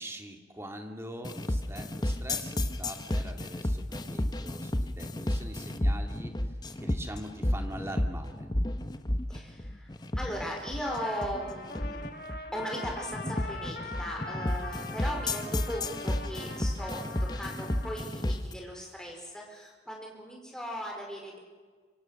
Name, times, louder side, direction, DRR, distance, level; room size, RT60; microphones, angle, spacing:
voice 1, 0.0-6.3 6.8-8.5, right 1 dB, 15° right, 4 dB, 2.2 m, -43 dB
sound 1, 1.2-18.5, left 1 dB, 20° left, 1.1 m, -32 dB
voice 2, 9.3-9.9 10.1-12.1 12.5-21.4, equal, 5° left, -1 dB, 4.9 m, -38 dB
Trumpet, 10.8-18.0, left 3 dB, 55° left, 2.1 m, -42 dB
25.5 x 24.5 x 6.5 m, 1.4 s
head